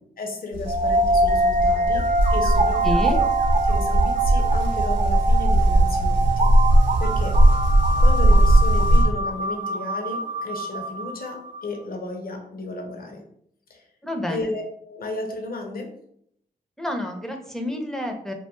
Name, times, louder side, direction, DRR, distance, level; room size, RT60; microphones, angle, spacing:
voice 1, 0.2-3.2 3.6-6.5 7.0-7.4 8.0-13.2 13.7-13.9 14.3-15.9, left 3 dB, 55° left, 2 dB, 0.7 m, -34 dB
sound 1, 0.5-9.0, right 1 dB, 80° right, 0.7 m, -19 dB
sound 2, 0.7-11.6, right 2 dB, 45° right, 0.4 m, -24 dB
voice 2, 2.8-3.2 14.0-14.6 16.8-18.3, left 1 dB, ahead, 3 dB, 0.6 m, -29 dB
2.4 x 2.2 x 3.0 m, 0.69 s
cardioid pair, 50°, 18 cm